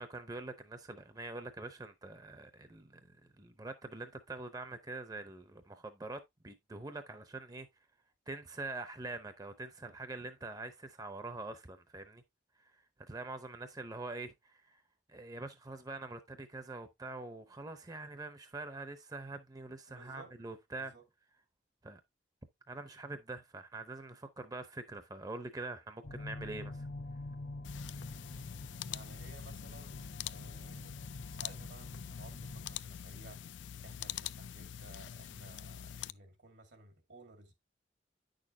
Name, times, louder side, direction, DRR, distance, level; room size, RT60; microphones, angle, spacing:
voice 1, 0.0-7.7 8.3-12.2 12.6-14.8 15.1-20.9 21.8-22.0 22.7-26.9, right 2 dB, 20° right, 0.7 m, -44 dB
voice 2, 19.9-20.3 20.8-21.0 28.9-31.0 31.3-33.4 33.8-37.5, right 2 dB, 80° right, 2.2 m, -56 dB
sound 1, 26.0-32.8, left 2 dB, 50° left, 0.8 m, -46 dB
sound 2, 27.6-36.1, left 10 dB, 85° left, 0.4 m, -45 dB
9.6 x 6.4 x 2.7 m
head